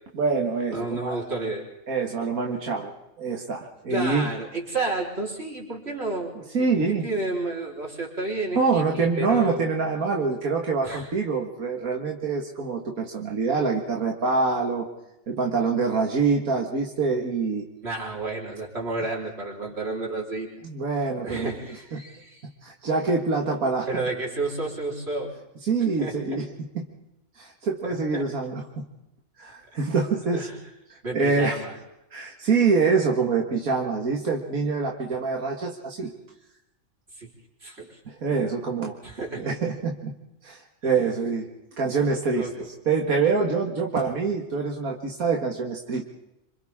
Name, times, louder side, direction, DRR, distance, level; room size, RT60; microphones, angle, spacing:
voice 1, 0.1-1.2 1.9-4.3 6.5-7.1 8.5-14.9 15.3-17.7 20.6-21.5 21.9-22.0 22.6-23.9 25.7-26.9 27.4-28.8 29.4-30.5 31.1-31.6 32.1-36.1 38.1-39.0 39.4-40.1 40.4-41.5 41.8-42.5 42.9-46.0, right 4 dB, 85° right, 1 dB, 2.3 m, -25 dB
voice 2, 0.7-1.7 3.9-6.5 6.9-9.7 10.8-11.1 17.8-20.5 21.2-22.5 23.9-25.3 26.0-26.4 27.8-28.3 30.3-30.6 31.0-31.7 37.2-37.3 37.6-38.0 39.0-39.7 42.4-42.7, right 2 dB, 50° right, -2 dB, 4.6 m, -31 dB
27.5 x 26.0 x 3.7 m, 0.91 s
omnidirectional pair, 1.4 m